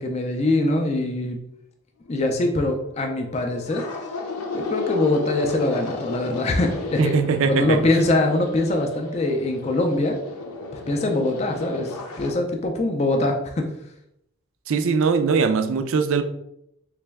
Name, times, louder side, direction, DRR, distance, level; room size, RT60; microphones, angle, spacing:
voice 1, 0.0-1.4 2.1-3.8 4.5-7.1 7.5-10.2 10.9-13.7, left 2 dB, 30° left, 3 dB, 0.3 m, -23 dB
sound 1, 2.4-12.3, left 3 dB, 85° left, 0.7 m, -34 dB
voice 2, 7.0-7.8 14.7-16.2, right 5 dB, 65° right, 8 dB, 0.4 m, -21 dB
3.3 x 3.0 x 3.4 m, 0.78 s
head